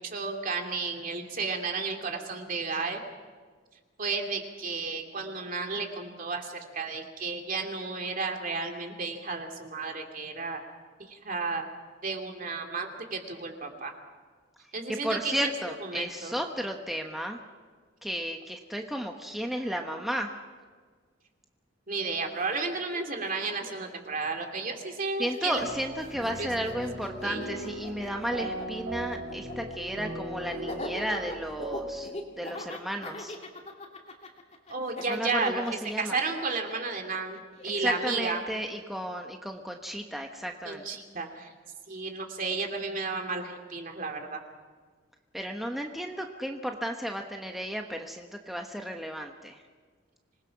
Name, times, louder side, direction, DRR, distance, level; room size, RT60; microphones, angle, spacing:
voice 1, 0.0-3.0 4.0-10.6 11.0-11.6 12.0-13.9 14.7-15.5 15.8-16.3 21.9-25.6 26.4-26.5 27.2-27.4 34.7-35.6 36.0-38.4 40.6-41.5 41.9-44.4, right 4 dB, 45° right, 3 dB, 2.6 m, -33 dB
voice 2, 14.9-17.4 18.0-20.3 25.2-32.1 32.4-33.3 35.1-36.2 37.8-40.8 45.3-49.6, equal, ahead, 2 dB, 1.1 m, -33 dB
Laughter, 22.3-22.4 22.6-25.0 25.2-38.3, left 1 dB, 35° left, 2.7 m, -42 dB
sound 1, 25.5-32.0, right 1 dB, 65° right, 5.8 m, -38 dB
26.0 x 20.0 x 5.9 m, 1.5 s
head